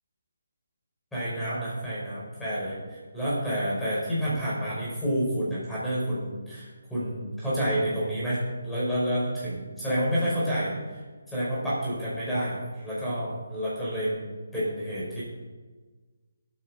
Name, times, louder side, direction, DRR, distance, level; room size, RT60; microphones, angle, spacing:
voice 1, 1.1-11.0 11.3-14.3 14.5-15.2, equal, 5° left, -10 dB, 5.4 m, -29 dB
19.0 x 8.9 x 5.1 m, 1.4 s
figure-of-eight pair, 155°, 0 cm